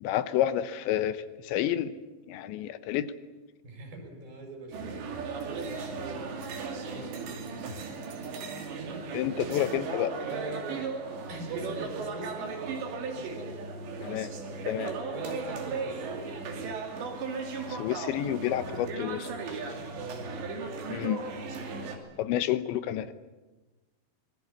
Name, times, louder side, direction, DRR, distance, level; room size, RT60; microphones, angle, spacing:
voice 1, 0.0-1.9 2.3-3.1 9.1-10.2 14.0-14.3 14.7-14.9 17.7-19.3 20.9-21.2 22.2-23.1, left 12 dB, 85° left, 12 dB, 3.3 m, -29 dB
voice 2, 3.6-5.7 6.0-6.3 6.9-7.2 10.2-10.9 11.3-12.5 13.1-13.6 15.1-16.1 19.9-20.3, right 3 dB, 55° right, 3 dB, 7.3 m, -41 dB
sound 1, 4.7-22.0, right 4 dB, 75° right, 5.0 m, -36 dB
26.5 x 21.0 x 8.5 m, 1.1 s
omnidirectional pair, 5.2 m